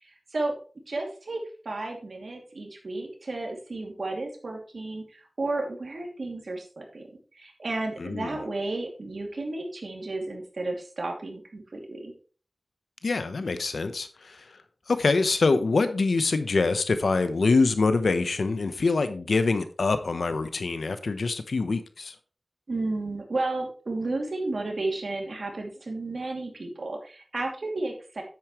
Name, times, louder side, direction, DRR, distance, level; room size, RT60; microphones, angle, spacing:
voice 1, 0.0-0.5 0.9-7.1 7.3-12.1 22.7-28.2, right 2 dB, 70° right, 2 dB, 2.7 m, -33 dB
voice 2, 8.0-8.4 13.0-14.6 14.9-22.1, left 3 dB, 85° left, 10 dB, 1.0 m, -25 dB
9.5 x 8.6 x 3.2 m, 0.39 s
wide cardioid pair, 60°, 0 cm